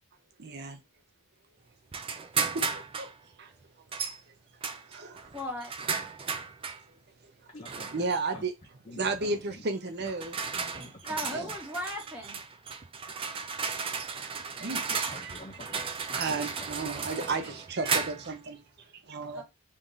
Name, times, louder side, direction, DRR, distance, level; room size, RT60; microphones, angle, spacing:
voice 1, 0.4-0.8 2.5-3.1 3.4-3.5 4.1-4.2 4.9-5.3 7.4-7.5 7.9-8.6 9.0-10.7 11.3-11.5 14.2-14.9 15.2-15.3 16.1-18.6 19.0-19.4, right 3 dB, 50° right, 0.7 m, -34 dB
sound 1, 1.9-3.1 3.9-4.2 4.6-6.8 7.6-8.2 9.2-9.4 10.0-18.4, right 5 dB, 25° right, 0.4 m, -34 dB
voice 2, 5.3-5.7 11.0-12.4 19.3-19.4, equal, 5° right, 0.9 m, -36 dB
voice 3, 7.5-7.9 8.3-8.4 8.9-9.2 9.5-9.6 10.0-10.3 10.6-11.5 14.9-16.7 17.4-17.6, left 1 dB, 30° left, 0.6 m, -47 dB
3.3 x 2.6 x 3.8 m
head